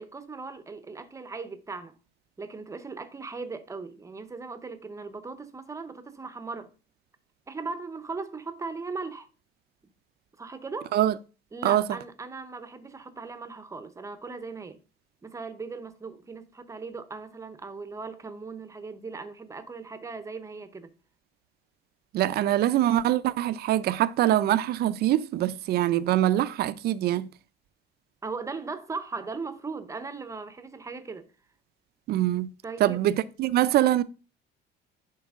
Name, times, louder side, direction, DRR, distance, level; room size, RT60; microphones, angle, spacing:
voice 1, 0.0-1.9 2.4-6.7 7.5-9.3 10.4-10.9 11.5-14.8 15.2-20.9 28.2-31.3 32.6-33.0, right 4 dB, 15° right, 0.8 m, -38 dB
voice 2, 22.1-27.3 32.1-32.5 32.8-34.0, right 13 dB, 55° right, 0.5 m, -24 dB
10.5 x 4.7 x 3.6 m
cardioid pair, 145°, 20 cm